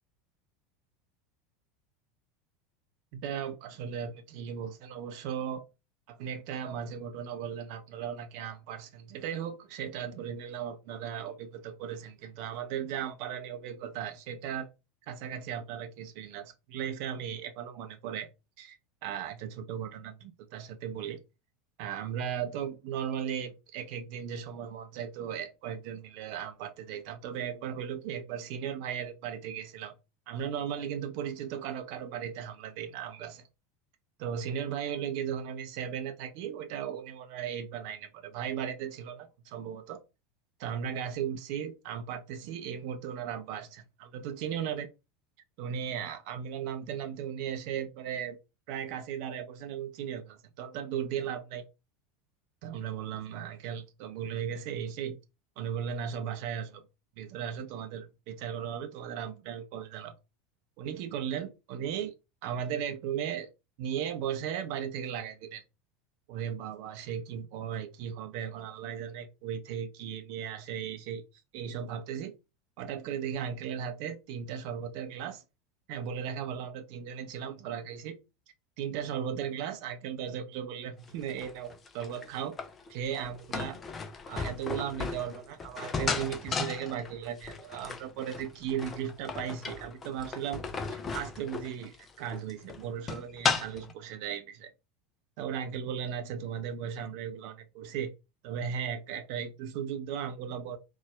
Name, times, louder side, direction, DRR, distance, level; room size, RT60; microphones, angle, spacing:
voice 1, 3.1-5.6 6.1-14.7 15.1-18.3 18.6-21.2 21.8-29.9 30.3-33.4 34.2-40.0 40.6-44.9 45.6-48.4 48.7-51.6 52.6-55.2 55.6-56.8 57.2-60.1 60.8-62.1 62.4-63.5 63.8-65.6 66.3-71.2 71.5-72.3 72.8-75.4 75.9-78.2 78.8-82.5 82.9-83.8 84.3-90.6 90.9-94.7 95.4-98.1 98.4-100.8, right 8 dB, 55° right, 0.5 m, -36 dB
sound 1, 81.1-93.9, left 5 dB, 25° left, 0.5 m, -35 dB
4.0 x 2.3 x 2.2 m
figure-of-eight pair, 75°, 0 cm